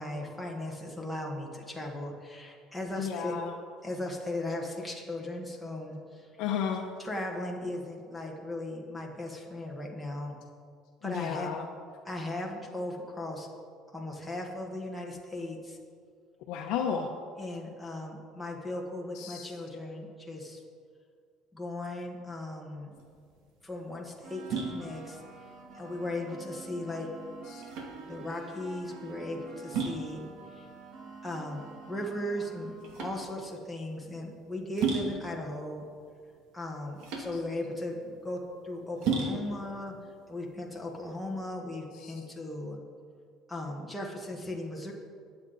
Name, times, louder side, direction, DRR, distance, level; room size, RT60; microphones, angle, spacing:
voice 1, 0.0-3.4 3.8-6.3 7.0-10.3 11.0-11.5 12.0-13.5 13.9-15.8 17.4-20.6 21.5-22.9 23.6-25.2 25.7-27.1 28.1-30.7 31.2-35.8 36.5-40.0 40.3-42.8 43.5-44.9, left 1 dB, ahead, -2 dB, 1.5 m, -37 dB
voice 2, 3.0-3.5 6.4-6.9 11.0-11.7 16.5-17.1 19.1-19.5 27.5-27.6 42.0-42.2, left 7 dB, 65° left, 2 dB, 0.9 m, -33 dB
sound 1, 22.9-41.5, right 4 dB, 70° right, 2.5 m, -37 dB
sound 2, 24.2-33.1, right 4 dB, 55° right, 2.1 m, -48 dB
20.5 x 7.8 x 4.1 m, 2.1 s
cardioid pair, 160°, 0 cm